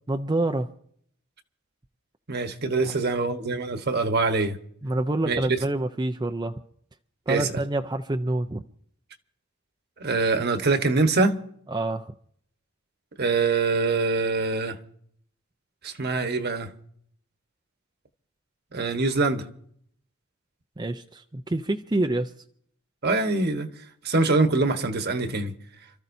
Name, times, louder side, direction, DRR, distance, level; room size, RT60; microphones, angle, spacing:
voice 1, 0.1-0.7 2.8-2.9 4.8-6.5 7.3-8.6 11.7-12.1 20.8-22.3, right 2 dB, 20° right, 0.5 m, -27 dB
voice 2, 2.3-4.6 5.2-5.6 7.3-7.5 10.0-11.3 13.2-14.8 15.8-16.7 18.7-19.5 23.0-23.7 24.0-25.5, right 3 dB, 50° right, 1.3 m, -24 dB
29.0 x 13.5 x 2.7 m
head